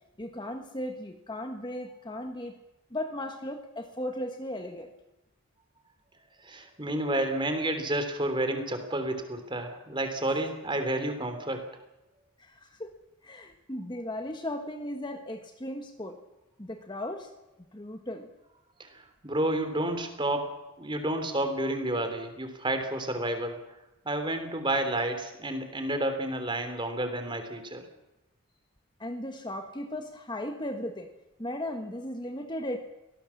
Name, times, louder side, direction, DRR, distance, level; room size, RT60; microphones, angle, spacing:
voice 1, 0.2-2.6 2.9-4.9 12.4-13.0 13.2-16.2 16.6-17.3 17.7-18.3 29.0-31.1 31.4-32.8, left 1 dB, 20° left, 5 dB, 1.4 m, -36 dB
voice 2, 6.4-11.6 18.8-20.5 20.8-23.6 24.0-27.8, right 1 dB, 20° right, 7 dB, 3.4 m, -30 dB
25.0 x 18.5 x 7.2 m, 0.97 s
head